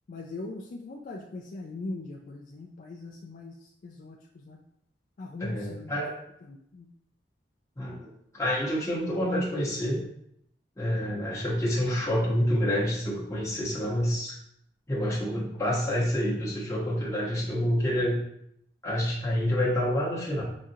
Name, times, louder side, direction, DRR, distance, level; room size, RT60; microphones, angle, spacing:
voice 1, 0.1-4.6 5.2-6.0 6.4-6.9, left 2 dB, 50° left, 0 dB, 0.3 m, -41 dB
voice 2, 5.4-6.1 7.8-10.0 10.8-14.3 14.9-18.2 18.8-20.4, equal, 15° left, -6 dB, 1.0 m, -28 dB
5.0 x 2.4 x 2.7 m, 0.74 s
head